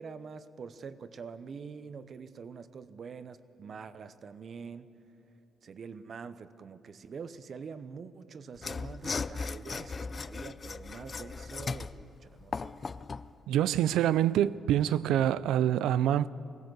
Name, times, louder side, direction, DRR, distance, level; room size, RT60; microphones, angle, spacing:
voice 1, 0.0-4.9 5.6-12.7, right 5 dB, 50° right, 0.8 m, -45 dB
Mechanisms / Sawing, 8.6-13.3, left 4 dB, 35° left, 0.5 m, -37 dB
voice 2, 13.5-16.3, right 11 dB, 85° right, 0.4 m, -26 dB
21.5 x 16.5 x 7.9 m
cardioid pair, 90°, 0 cm